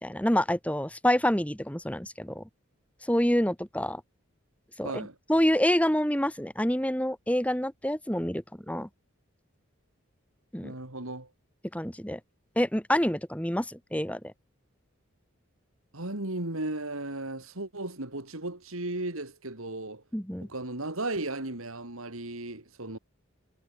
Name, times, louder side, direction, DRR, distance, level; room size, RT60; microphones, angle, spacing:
voice 1, 0.0-2.4 3.0-4.0 4.8-8.9 10.5-10.7 11.7-12.2 12.6-14.3 20.1-20.5, equal, 5° left, 2.5 m, -27 dB
voice 2, 4.8-5.2 10.6-11.3 15.9-20.0 20.4-23.0, right 2 dB, 75° right, 3.6 m, -35 dB
head